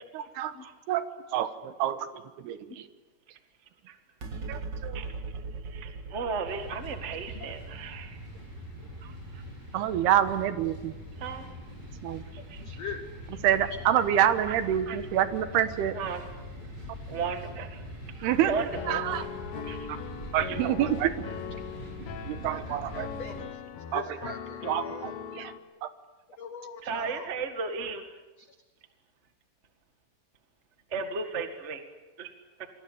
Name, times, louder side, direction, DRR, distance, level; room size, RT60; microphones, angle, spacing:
voice 1, 0.1-0.5 0.9-1.0 1.3-2.0 2.4-2.9 4.5-5.0 9.7-10.9 12.0-12.2 13.4-16.0 18.2-18.5 18.9-19.2 19.6-19.7 19.9-20.0 20.3-21.2 22.0-23.1 23.9-24.3 24.6-25.5 25.8-25.9, right 11 dB, 75° right, 12 dB, 3.0 m, -27 dB
sound 1, 4.2-10.9, right 3 dB, 45° right, 1.5 m, -41 dB
voice 2, 4.9-8.2 9.0-9.4 11.2-11.5 12.3-12.8 14.5-14.6 14.9-15.0 15.9-16.3 17.1-17.8 18.1-19.0 19.6-19.9 26.8-28.1 30.9-31.8 32.2-32.3, right 4 dB, 60° right, 7 dB, 0.7 m, -35 dB
sound 2, 6.4-23.4, equal, 25° right, 8.3 m, -43 dB
voice 3, 12.6-13.1 21.5-21.6 22.5-23.6 23.9-25.0 26.4-27.3 28.4-28.5, left 6 dB, 80° left, 8 dB, 1.4 m, -42 dB
Piano, 18.7-25.6, left 9 dB, 60° left, 3.0 m, -40 dB
28.5 x 22.5 x 8.7 m, 1.1 s
omnidirectional pair, 4.9 m